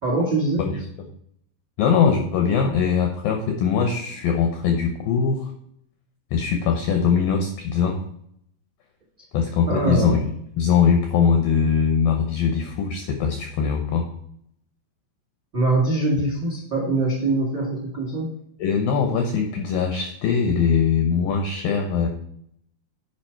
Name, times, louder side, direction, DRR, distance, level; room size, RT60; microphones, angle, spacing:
voice 1, 0.0-0.6 9.7-10.2 15.5-18.3, right 2 dB, 75° right, -2 dB, 0.9 m, -23 dB
voice 2, 1.8-5.5 6.3-8.0 9.3-10.2 10.6-14.1 18.6-22.1, left 6 dB, 85° left, 4 dB, 2.0 m, -21 dB
9.8 x 4.9 x 4.4 m, 0.69 s
omnidirectional pair, 5.1 m